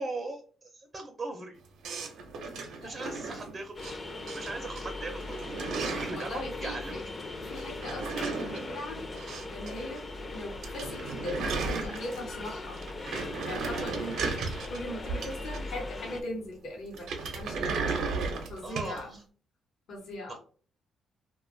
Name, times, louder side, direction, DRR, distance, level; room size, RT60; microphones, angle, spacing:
voice 1, 0.0-1.6 2.8-4.0 4.3-7.0 18.6-19.2 20.3-20.4, right 2 dB, 35° right, 3 dB, 0.5 m, -39 dB
sound 1, 1.8-3.9 4.3-4.8 5.1-6.3 7.6-9.7 10.0-10.1 10.4-10.5 10.6-12.4 12.8-15.9 16.9-19.0, right 4 dB, 75° right, 0.6 m, -35 dB
voice 2, 2.8-3.4 6.1-7.0 7.4-9.0 9.5-10.1 10.3-12.8 13.5-18.0 18.5-19.2 19.9-20.4, left 1 dB, 70° left, 0 dB, 0.9 m, -40 dB
sound 2, 3.8-16.2, left 2 dB, 35° left, 0.5 m, -40 dB
2.5 x 2.2 x 2.6 m, 0.42 s
cardioid pair, 90°, 0 cm